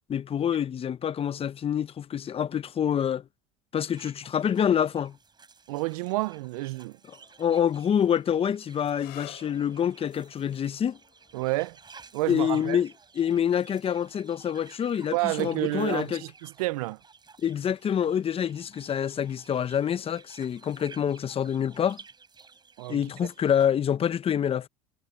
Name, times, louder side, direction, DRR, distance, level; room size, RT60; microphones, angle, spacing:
voice 1, 0.1-3.2 3.7-5.2 7.4-11.0 12.3-12.9 13.2-16.2 17.4-22.0 22.9-24.7, left 9 dB, 30° left, 0.8 m, -26 dB
sound 1, 3.8-23.7, right 5 dB, 25° right, 5.6 m, -54 dB
voice 2, 5.7-7.0 11.3-11.8 12.1-12.8 15.1-17.0 22.8-23.0, right 21 dB, 80° right, 0.5 m, -29 dB
sound 2, 8.9-16.3 17.3-17.8 21.4-21.7, left 23 dB, 65° left, 6.2 m, -55 dB
hypercardioid pair, 90°, 18 cm